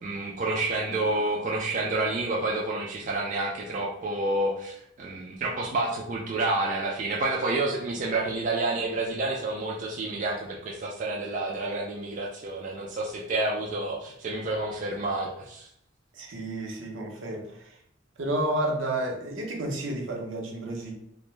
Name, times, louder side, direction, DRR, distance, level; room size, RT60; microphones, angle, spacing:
voice 1, 0.0-15.7, right 2 dB, 40° right, -2 dB, 0.3 m, -29 dB
voice 2, 16.1-17.8 18.2-20.9, right 1 dB, 75° right, 0 dB, 0.6 m, -31 dB
2.5 x 2.1 x 3.0 m, 0.73 s
head